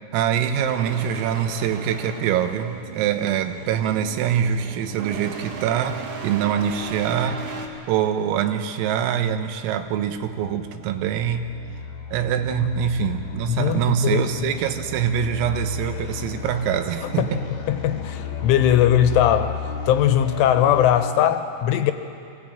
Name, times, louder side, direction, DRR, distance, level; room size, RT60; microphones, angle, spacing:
voice 1, 0.1-7.4 7.9-11.5 12.1-17.4, right 9 dB, 90° right, 8 dB, 3.7 m, -24 dB
sound 1, 0.7-7.7, right 4 dB, 60° right, 2.2 m, -36 dB
sound 2, 9.7-21.1, left 6 dB, 50° left, 2.4 m, -34 dB
voice 2, 13.5-14.6 17.2-17.3 17.7-19.6 19.9-21.9, left 10 dB, 80° left, 9 dB, 3.1 m, -20 dB
23.5 x 17.0 x 8.7 m, 2.5 s
omnidirectional pair, 5.9 m